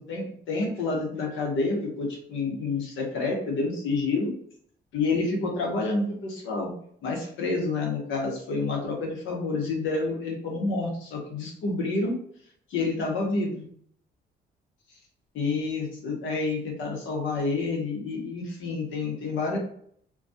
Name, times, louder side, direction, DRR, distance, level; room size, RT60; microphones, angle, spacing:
voice 1, 0.0-4.3 4.9-6.7 7.0-12.1 12.7-13.6 15.3-19.6, left 3 dB, 80° left, 0 dB, 0.8 m, -28 dB
2.3 x 2.2 x 2.6 m, 0.63 s
cardioid pair, 90°, 20 cm